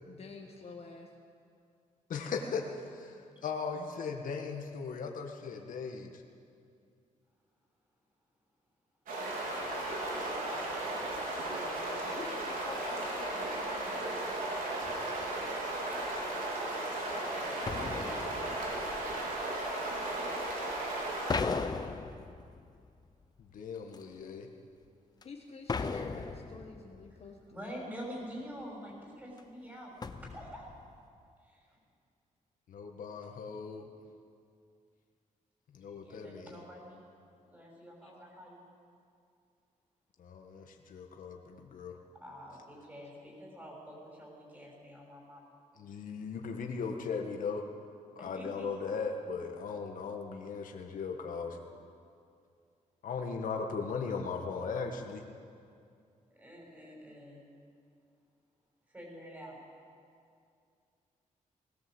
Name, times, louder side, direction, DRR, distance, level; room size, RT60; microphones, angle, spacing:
voice 1, 0.1-1.1 12.0-14.0 25.2-27.4 38.0-38.1, left 4 dB, 45° left, 1 dB, 1.7 m, -48 dB
voice 2, 2.1-6.2 23.5-24.5 32.7-33.9 35.7-36.6 40.2-42.0 45.8-47.7 48.2-51.6 53.0-55.2, left 5 dB, 75° left, 3 dB, 1.8 m, -38 dB
sound 1, 9.1-21.4, right 2 dB, 85° right, 4.3 m, -35 dB
sound 2, 14.8-15.4 17.7-19.4 21.3-23.3 23.9-24.0 25.2-25.3 25.7-27.2 29.4-29.5 30.0-31.1, left 4 dB, 30° left, 0.8 m, -37 dB
voice 3, 27.5-30.6 31.4-31.6 36.0-37.0 37.5-38.6 42.2-45.5 48.2-48.7 56.3-57.4 58.9-59.6, equal, 15° right, -2 dB, 6.6 m, -47 dB
19.5 x 17.5 x 8.0 m, 2.4 s
wide cardioid pair, 160°, 14 cm